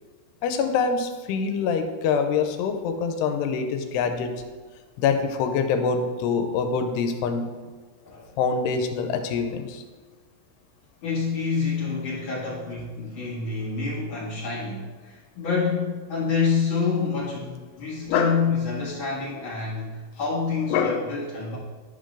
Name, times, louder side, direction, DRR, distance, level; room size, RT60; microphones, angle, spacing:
voice 1, 0.4-4.3 5.0-7.5 8.4-9.8 18.1-18.4 20.7-21.0, left 5 dB, 90° left, 6 dB, 2.7 m, -25 dB
voice 2, 11.0-21.6, left 5 dB, 70° left, -6 dB, 1.2 m, -27 dB
10.5 x 5.3 x 3.7 m, 1.4 s
omnidirectional pair, 4.8 m